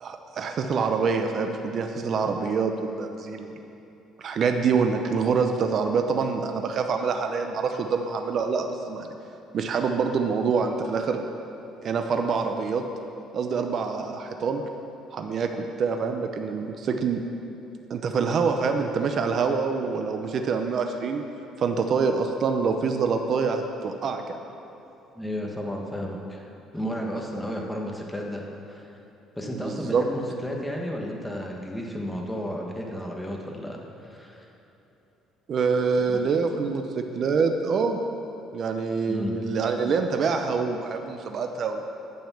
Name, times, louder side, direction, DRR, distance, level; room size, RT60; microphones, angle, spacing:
voice 1, 0.0-3.5 4.2-9.1 9.5-11.2 11.8-12.8 13.3-14.6 15.1-17.2 17.9-21.2 21.6-24.4 29.5-30.0 35.5-38.0 38.5-41.8, right 5 dB, 45° right, 5 dB, 0.6 m, -26 dB
voice 2, 25.1-26.5 26.7-28.4 28.7-28.9 29.4-34.5 36.1-36.2 39.1-39.3, equal, 5° left, 0 dB, 1.3 m, -33 dB
9.3 x 7.0 x 7.0 m, 3.0 s
cardioid pair, 140°, 0 cm